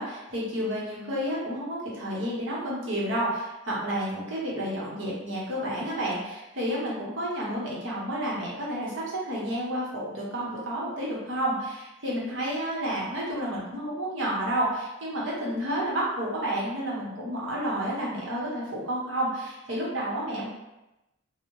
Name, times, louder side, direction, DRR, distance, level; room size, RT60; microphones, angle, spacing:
voice 1, 0.0-20.5, right 1 dB, 70° right, -6 dB, 1.0 m, -30 dB
3.1 x 2.1 x 3.1 m, 0.97 s
head